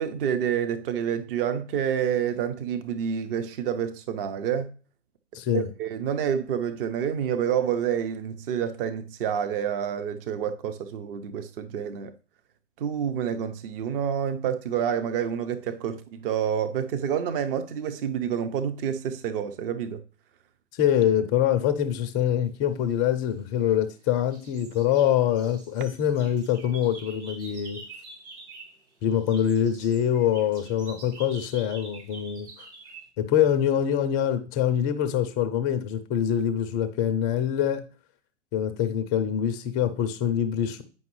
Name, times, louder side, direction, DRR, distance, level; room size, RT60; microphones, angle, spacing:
voice 1, 0.0-4.7 5.5-12.1 12.8-20.0, right 8 dB, 45° right, 0.7 m, -28 dB
voice 2, 5.3-5.7 20.7-27.8 29.0-32.7 33.2-37.8 38.5-40.8, left 10 dB, 15° left, 0.3 m, -24 dB
sound 1, 23.2-24.0 24.3-28.8 29.1-33.1, right 3 dB, 65° right, 3.3 m, -47 dB
9.2 x 5.3 x 3.1 m
figure-of-eight pair, 115°, 37 cm